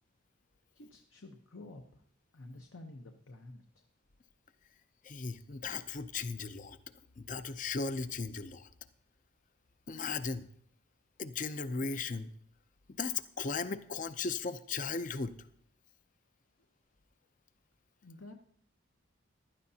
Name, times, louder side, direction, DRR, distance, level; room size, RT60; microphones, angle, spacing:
voice 1, 0.7-2.0 2.3-3.8 18.0-18.3, left 2 dB, 65° left, 4 dB, 0.9 m, -50 dB
voice 2, 5.0-6.8 7.2-8.7 9.9-10.5 11.2-12.3 13.0-15.4, left 4 dB, 40° left, 12 dB, 0.5 m, -36 dB
15.5 x 12.0 x 2.8 m, 0.66 s
head